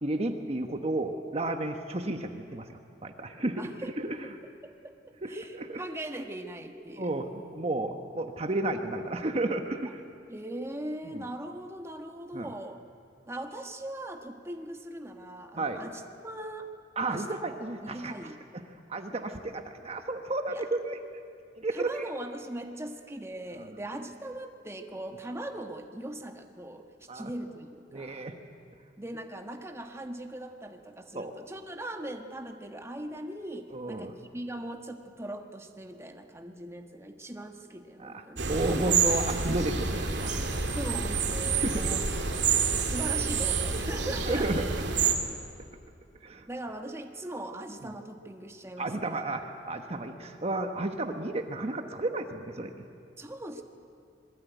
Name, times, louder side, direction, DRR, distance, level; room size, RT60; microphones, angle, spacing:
voice 1, 0.0-4.3 5.2-5.8 7.0-10.0 11.1-11.2 12.3-12.5 15.6-15.8 17.0-18.1 18.5-18.6 18.9-21.0 21.5-21.9 23.6-23.7 27.1-27.3 27.9-28.4 31.1-31.3 33.7-34.1 38.0-38.2 38.5-40.4 41.6-42.2 42.8-43.0 44.3-44.6 46.2-46.5 47.8-47.9 48.8-52.8, right 2 dB, 35° right, 6 dB, 1.2 m, -32 dB
voice 2, 3.6-3.9 4.6-7.1 9.8-9.9 10.3-12.8 13.3-16.7 17.1-17.5 17.8-18.4 20.5-20.6 21.7-28.3 29.0-38.5 40.7-42.5 42.8-44.5 46.5-49.2 53.2-53.6, right 1 dB, 15° right, 4 dB, 1.4 m, -40 dB
sound 1, 38.4-45.1, right 5 dB, 70° right, 2.4 m, -28 dB
26.5 x 21.5 x 9.3 m, 2.4 s
head